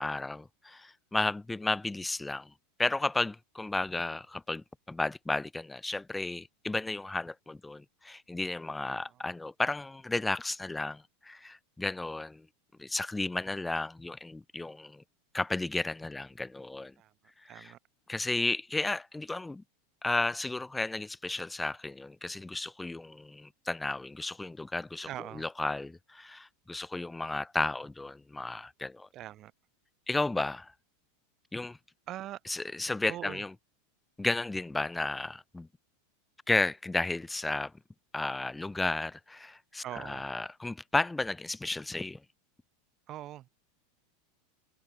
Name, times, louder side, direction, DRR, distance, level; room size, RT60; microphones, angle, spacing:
voice 1, 0.0-2.5 2.8-12.5 12.8-15.0 15.3-16.9 17.4-17.7 18.1-19.6 20.0-25.1 25.3-29.1 30.1-30.7 31.5-31.8 32.5-33.5 34.2-35.7 36.5-37.7 38.1-42.2, left 2 dB, 5° left, 0.9 m, -33 dB
voice 2, 8.9-9.2 17.0-17.1 17.5-17.8 25.1-25.4 29.1-29.5 32.1-32.4 33.1-33.4 39.8-40.3 43.1-43.5, right 13 dB, 30° right, 1.9 m, -42 dB
supercardioid pair, 155°, 0 cm